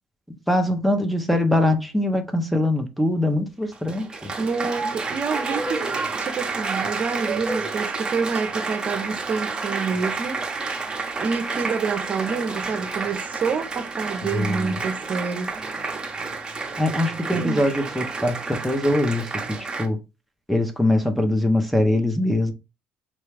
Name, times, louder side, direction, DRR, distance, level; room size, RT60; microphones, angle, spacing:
voice 1, 0.3-4.3 14.2-14.7 16.8-19.3 19.8-20.0 20.5-22.5, left 1 dB, ahead, 0.6 m, -22 dB
Applause, 3.6-19.9, right 4 dB, 20° right, 0.9 m, -30 dB
voice 2, 4.4-10.4 11.2-15.5 17.3-17.7, right 5 dB, 45° right, 0.6 m, -28 dB
4.1 x 2.2 x 3.3 m
supercardioid pair, 90°, 4 cm